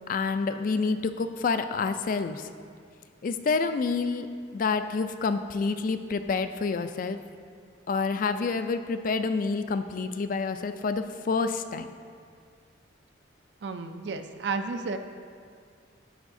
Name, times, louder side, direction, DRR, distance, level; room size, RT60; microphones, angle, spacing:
voice 1, 0.1-2.5 3.2-7.2 7.9-11.9, left 4 dB, 45° left, 9 dB, 0.3 m, -28 dB
voice 2, 13.6-15.0, right 4 dB, 60° right, 8 dB, 0.5 m, -32 dB
11.0 x 7.3 x 2.6 m, 2.1 s
head